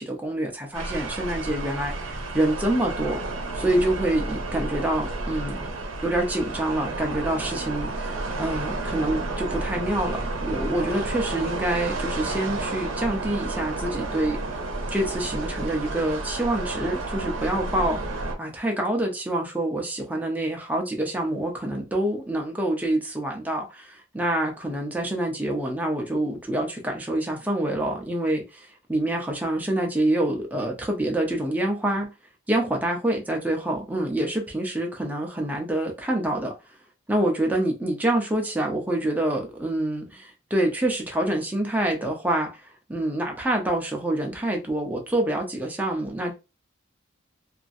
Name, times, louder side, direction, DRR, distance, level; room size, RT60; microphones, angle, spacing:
voice 1, 0.0-3.2 3.5-5.7 6.0-14.4 14.9-18.0 18.4-32.1 32.5-36.5 37.1-46.3, right 1 dB, 10° right, 0.7 m, -26 dB
sound 1, 0.7-18.3, right 2 dB, 75° right, 0.8 m, -31 dB
2.9 x 2.6 x 2.5 m
head